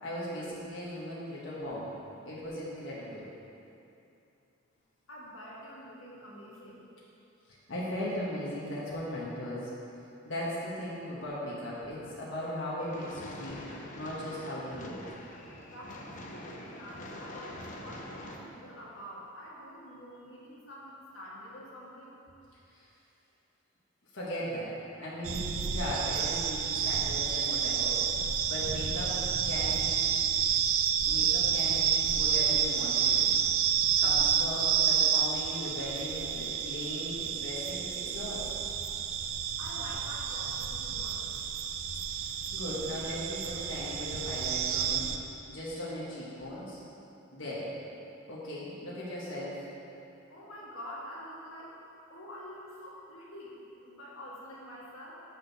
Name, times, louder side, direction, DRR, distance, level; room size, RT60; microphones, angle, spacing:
voice 1, 0.0-1.9 2.2-3.3 7.7-9.7 10.2-15.0 22.7-22.8 24.1-30.0 31.0-33.4 34.0-38.5 42.5-46.8 47.3-47.7 48.3-49.6, left 1 dB, 65° left, -7 dB, 1.5 m, -38 dB
voice 2, 5.1-6.8 15.6-22.2 39.6-41.3 50.3-51.7 52.1-55.1, equal, 85° left, -5 dB, 1.7 m, -46 dB
sound 1, 12.8-18.4, left 1 dB, 40° left, 0.7 m, -45 dB
sound 2, 25.2-45.2, right 8 dB, 80° right, 0.5 m, -29 dB
6.4 x 6.3 x 6.0 m, 2.8 s
head